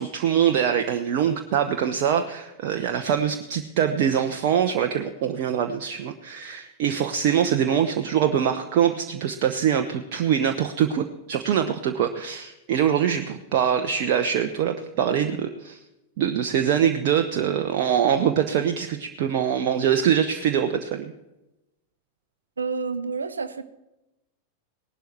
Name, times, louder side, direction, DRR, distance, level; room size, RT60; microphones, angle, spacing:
voice 1, 0.0-15.8 16.2-21.0, right 8 dB, 45° right, 6 dB, 0.9 m, -23 dB
voice 2, 22.6-23.6, right 4 dB, 75° right, 13 dB, 0.8 m, -29 dB
18.5 x 12.0 x 4.5 m, 0.97 s
figure-of-eight pair, 90°, 0 cm